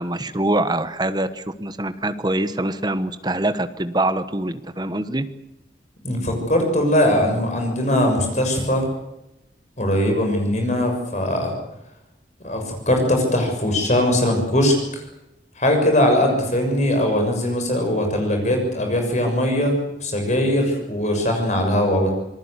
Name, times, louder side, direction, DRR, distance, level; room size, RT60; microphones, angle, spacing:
voice 1, 0.0-5.3, right 1 dB, 25° right, 11 dB, 1.2 m, -24 dB
voice 2, 6.0-8.8 9.8-11.5 12.4-15.0 15.6-22.1, left 1 dB, 40° left, 3 dB, 6.7 m, -20 dB
26.5 x 19.5 x 8.3 m, 0.88 s
head